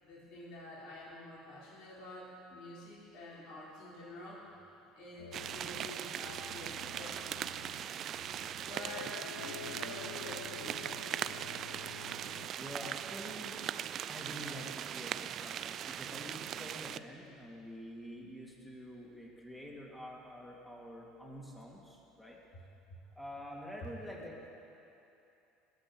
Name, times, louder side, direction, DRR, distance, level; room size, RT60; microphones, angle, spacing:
voice 1, 0.0-4.4 5.0-7.5 8.6-10.9, left 1 dB, 55° left, -7 dB, 3.9 m, -49 dB
sound 1, 5.2-12.5, left 11 dB, 80° left, 0.3 m, -49 dB
sound 2, 5.3-17.0, right 10 dB, 50° right, 0.4 m, -40 dB
voice 2, 12.5-13.5 14.1-22.4 23.1-24.5, equal, 5° left, -3 dB, 3.4 m, -47 dB
19.5 x 6.6 x 8.3 m, 2.9 s
hypercardioid pair, 70°, 0 cm